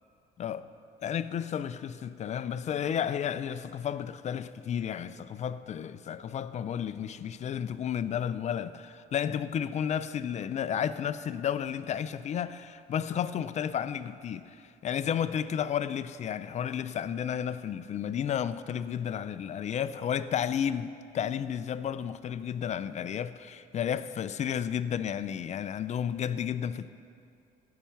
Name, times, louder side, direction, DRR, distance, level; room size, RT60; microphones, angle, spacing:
voice 1, 1.0-14.6 14.8-26.9, left 8 dB, 45° left, 0.5 m, -32 dB
16.5 x 5.8 x 7.0 m
cardioid pair, 110°, 17 cm